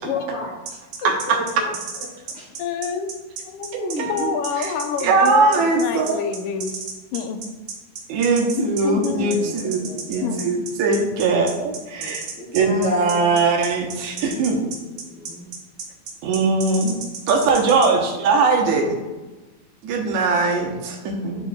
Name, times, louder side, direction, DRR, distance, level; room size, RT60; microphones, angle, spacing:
voice 1, 0.0-0.5 1.0-1.8 2.3-2.6 3.8-4.3 5.5-5.7 9.1-10.5 11.7-13.4 14.1-15.5, left 1 dB, 60° left, -4 dB, 1.7 m, -33 dB
sound 1, 0.7-17.9, right 5 dB, 60° right, 1.5 m, -33 dB
voice 2, 1.0-1.4 3.7-4.3 4.6-6.2 8.1-12.2 12.5-14.6 16.2-17.0 17.3-19.0 19.8-21.5, right 3 dB, 80° right, 1 dB, 2.3 m, -20 dB
voice 3, 2.6-3.1 3.5-6.7 7.1-7.4 8.4-9.3 10.2-10.6, left 7 dB, 90° left, 6 dB, 2.1 m, -27 dB
10.5 x 4.8 x 2.3 m, 1.1 s
omnidirectional pair, 3.4 m